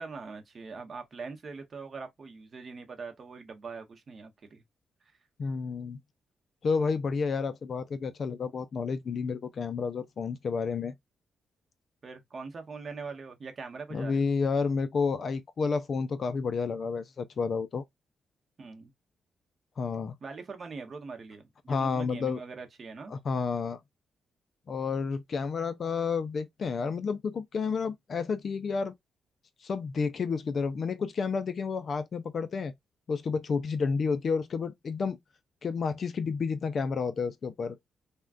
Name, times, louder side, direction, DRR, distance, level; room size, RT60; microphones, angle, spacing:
voice 1, 0.0-4.6 12.0-14.2 18.6-18.9 20.2-23.1, right 4 dB, 35° right, 0.8 m, -42 dB
voice 2, 5.4-6.0 6.6-10.9 13.9-17.8 19.8-20.1 21.7-22.4 23.1-23.8 24.7-28.9 29.6-32.7 33.1-35.2 35.6-37.8, left 5 dB, 40° left, 0.4 m, -30 dB
3.5 x 2.2 x 2.4 m
wide cardioid pair, 160°, 0 cm